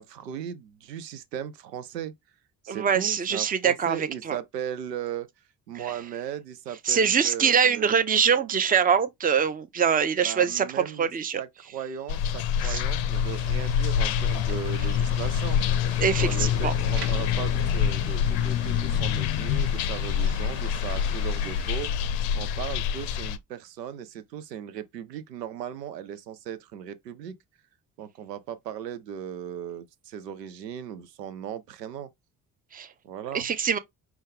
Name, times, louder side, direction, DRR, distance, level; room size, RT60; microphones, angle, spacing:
voice 1, 0.0-2.1 2.6-5.3 5.7-8.0 10.2-11.1 11.4-15.8 16.2-27.3 28.0-32.1 33.0-33.5, right 9 dB, 85° right, 0.6 m, -37 dB
voice 2, 2.7-4.4 5.7-5.9 6.8-11.4 12.6-12.8 16.0-16.7 32.7-32.9 33.3-33.8, right 7 dB, 20° right, 0.6 m, -24 dB
sound 1, 12.1-23.4, left 8 dB, 60° left, 0.6 m, -26 dB
sound 2, 13.1-21.9, right 5 dB, 70° right, 1.2 m, -45 dB
5.2 x 2.3 x 3.6 m
figure-of-eight pair, 45°, 48 cm